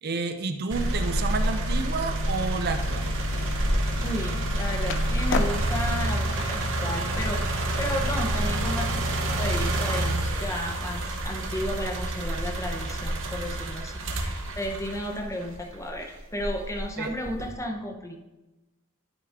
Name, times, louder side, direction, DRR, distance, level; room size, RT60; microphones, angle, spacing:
voice 1, 0.0-3.1 17.0-17.1, right 4 dB, 45° right, 7 dB, 0.5 m, -30 dB
sound 1, 0.7-15.7 16.3-17.5, right 1 dB, 60° right, 1.1 m, -28 dB
Skateboard, 2.8-8.0, left 4 dB, 60° left, 0.6 m, -37 dB
voice 2, 4.0-18.2, equal, 15° left, 2 dB, 0.8 m, -33 dB
12.0 x 4.9 x 3.6 m, 1.0 s
head